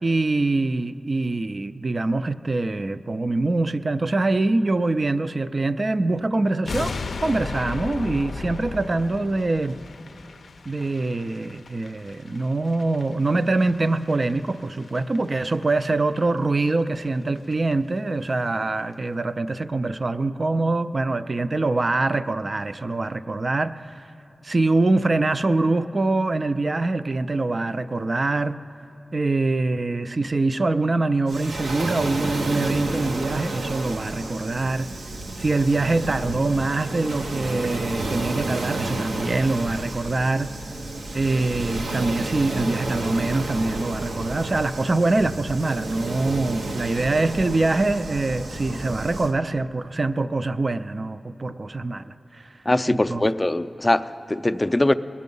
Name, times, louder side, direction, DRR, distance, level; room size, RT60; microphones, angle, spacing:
voice 1, 0.0-9.8 10.7-23.9 24.4-28.6 29.1-34.9 35.4-40.6 41.1-52.6 52.9-53.2, right 2 dB, 45° right, 0.4 m, -24 dB
sound 1, 6.7-15.8 16.1-16.3 16.7-16.8 17.1-17.2 17.4-17.7 18.0-18.1, left 4 dB, 80° left, 0.4 m, -36 dB
Waves surf, 31.3-49.3, right 2 dB, 90° right, 0.8 m, -31 dB
sound 2, 32.3-41.7, right 1 dB, 70° right, 1.1 m, -45 dB
voice 2, 52.7-54.9, left 1 dB, 25° left, 0.4 m, -22 dB
20.0 x 8.4 x 5.4 m
wide cardioid pair, 65°, 0 cm